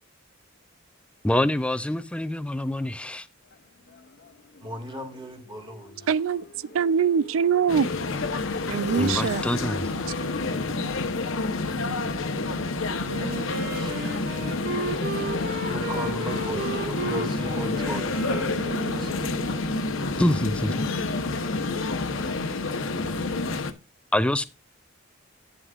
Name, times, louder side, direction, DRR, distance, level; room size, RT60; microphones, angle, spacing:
voice 1, 1.2-3.3 9.0-9.9 20.2-20.9 24.1-24.4, left 1 dB, 5° left, 0.4 m, -25 dB
Motorcycle, 3.5-13.3, left 4 dB, 50° left, 0.6 m, -41 dB
voice 2, 4.6-6.1 13.8-14.4 15.7-19.3, equal, 20° right, 1.9 m, -37 dB
voice 3, 6.1-6.4 6.7-7.9 8.7-9.4, right 7 dB, 70° right, 0.4 m, -23 dB
sound 1, 7.7-23.7, left 3 dB, 70° left, 1.0 m, -29 dB
Wind instrument woodwind instrument, 13.1-19.7, right 2 dB, 50° right, 2.1 m, -34 dB
11.0 x 9.7 x 2.4 m
head